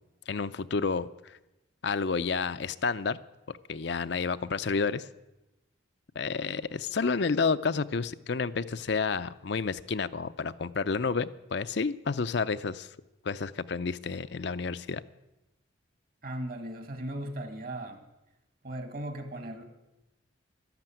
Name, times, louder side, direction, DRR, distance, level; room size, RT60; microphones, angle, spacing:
voice 1, 0.3-1.1 1.8-3.2 3.7-5.1 6.2-12.9 13.2-15.0, left 4 dB, 60° left, 12 dB, 0.5 m, -30 dB
voice 2, 16.2-18.0 18.6-19.6, right 1 dB, 50° right, 7 dB, 1.9 m, -37 dB
12.5 x 12.0 x 9.1 m, 0.97 s
head